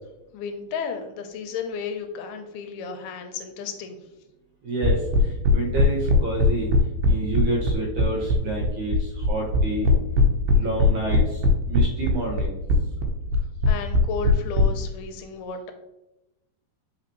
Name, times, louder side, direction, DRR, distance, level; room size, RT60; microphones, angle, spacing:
voice 1, 0.3-4.0 13.7-15.7, left 5 dB, 80° left, 6 dB, 2.5 m, -33 dB
voice 2, 4.6-5.0 5.5-6.7 7.1-9.0 9.3-9.9 10.6-11.2 11.7-12.5, right 2 dB, 70° right, -1 dB, 1.9 m, -28 dB
sound 1, 4.8-14.6, left 1 dB, 90° right, 2.8 m, -19 dB
5.9 x 5.7 x 3.0 m, 0.96 s
omnidirectional pair, 4.5 m